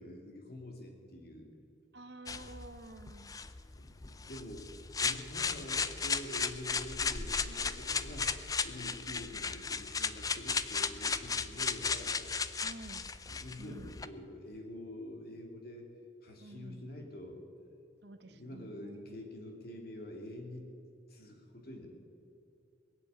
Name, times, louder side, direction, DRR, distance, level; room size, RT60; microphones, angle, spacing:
voice 1, 0.0-1.5 3.7-8.4 8.6-12.2 13.3-15.9 16.2-17.4 18.3-20.8 21.1-21.9, left 1 dB, 55° left, 2 dB, 2.7 m, -46 dB
voice 2, 1.9-3.3 12.6-13.1 13.6-13.9 16.4-16.9 18.0-19.3, right 2 dB, 60° right, 9 dB, 1.0 m, -50 dB
sound 1, 2.3-14.1, left 5 dB, 20° left, 0.5 m, -35 dB
21.5 x 8.1 x 8.2 m, 2.6 s
head